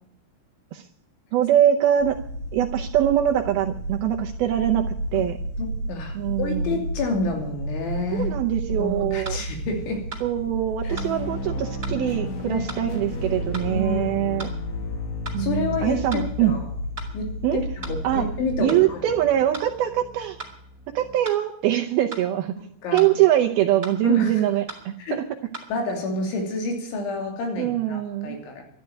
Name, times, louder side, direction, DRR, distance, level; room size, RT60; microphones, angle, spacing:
voice 1, 1.3-2.2 2.5-5.4 6.1-6.8 8.1-9.4 10.2-14.5 15.3-16.5 17.4-17.6 18.0-18.3 18.6-20.4 20.9-22.6 22.9-25.2 27.6-28.4, right 12 dB, 80° right, 3 dB, 2.3 m, -23 dB
sound 1, 2.0-18.6, right 1 dB, 35° left, 5.8 m, -33 dB
voice 2, 5.6-8.3 8.7-10.0 10.8-11.0 11.5-12.2 12.4-13.4 13.7-14.1 14.8-14.9 15.4-16.6 17.1-17.6 17.9-19.1 22.8-23.1 24.0-24.4 25.0-25.2 25.7-28.6, left 3 dB, 85° left, 3 dB, 5.3 m, -29 dB
sound 2, 8.5-8.6 9.2-9.4 10.1-10.3 11.0-11.1 11.8-12.0 12.7-12.8 13.5-13.7 14.4-14.6 15.2-15.4 16.1-16.3 17.0-17.1 17.8-18.0 18.7-18.8 19.5-19.7 20.4-20.6 21.2-21.4 22.1-22.3 23.0-23.1 23.8-24.0 24.7-24.8 25.5-25.7, right 3 dB, 15° right, 2.9 m, -37 dB
sound 3, 10.9-21.2, left 4 dB, 60° left, 2.2 m, -36 dB
13.0 x 10.5 x 9.1 m, 0.68 s
omnidirectional pair, 5.3 m